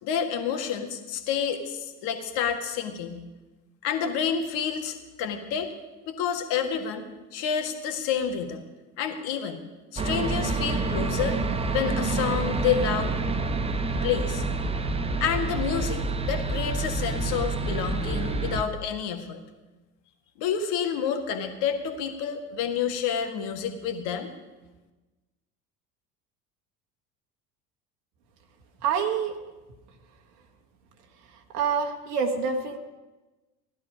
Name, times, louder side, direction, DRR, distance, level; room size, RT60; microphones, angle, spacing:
voice 1, 0.0-3.2 3.8-5.7 6.1-7.0 7.3-8.6 9.0-9.6 9.9-11.4 11.7-13.1 14.0-14.4 15.2-19.4 20.4-24.3, left 7 dB, 55° left, 5 dB, 1.8 m, -29 dB
sound 1, 10.0-18.6, right 3 dB, 10° right, 0.8 m, -28 dB
voice 2, 28.8-29.3 31.5-32.8, right 6 dB, 70° right, 3 dB, 1.5 m, -26 dB
16.0 x 11.5 x 5.2 m, 1.2 s
hypercardioid pair, 75°, 48 cm